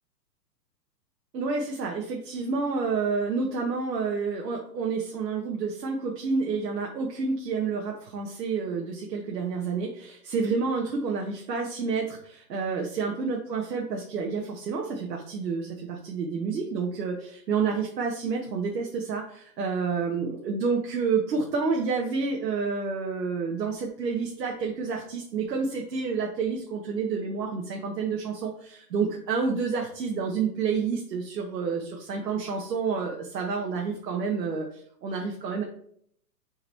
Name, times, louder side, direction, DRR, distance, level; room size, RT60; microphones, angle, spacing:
voice 1, 1.3-35.6, right 5 dB, 75° right, 0 dB, 1.3 m, -29 dB
5.7 x 4.1 x 4.3 m, 0.65 s
hypercardioid pair, 175°, 49 cm